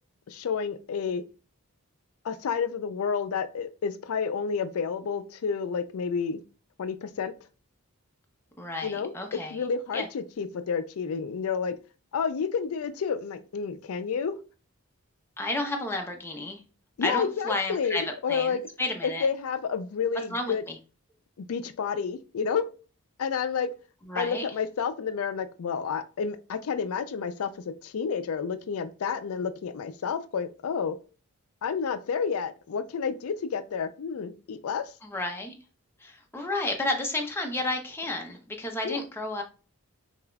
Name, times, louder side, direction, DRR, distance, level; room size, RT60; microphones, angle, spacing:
voice 1, 0.3-1.2 2.2-6.4 6.8-7.3 8.8-9.1 9.5-11.8 12.1-14.4 17.0-18.6 19.0-20.6 21.4-22.6 23.2-23.7 24.2-31.0 31.6-34.9 38.8-39.0, left 6 dB, 75° left, 10 dB, 0.4 m, -30 dB
voice 2, 8.6-9.6 9.9-10.1 15.4-16.6 17.0-18.0 18.3-19.3 20.3-20.7 24.1-24.4 35.0-35.5 36.0-39.4, left 2 dB, 10° left, 2 dB, 0.6 m, -31 dB
5.5 x 2.5 x 2.2 m, 0.34 s
head